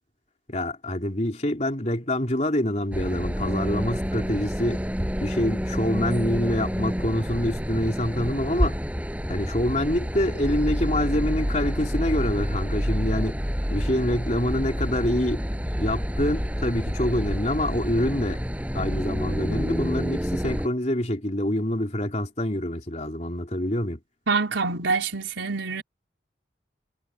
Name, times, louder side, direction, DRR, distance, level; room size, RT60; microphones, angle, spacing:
voice 1, 0.5-4.8 5.2-8.8 9.3-13.4 13.7-15.4 15.8-18.4 18.7-24.0, left 1 dB, 35° left, 3.6 m, -26 dB
sound 1, 2.9-20.7, equal, 10° right, 7.0 m, -28 dB
voice 2, 24.3-25.8, right 4 dB, 85° right, 4.4 m, -25 dB
head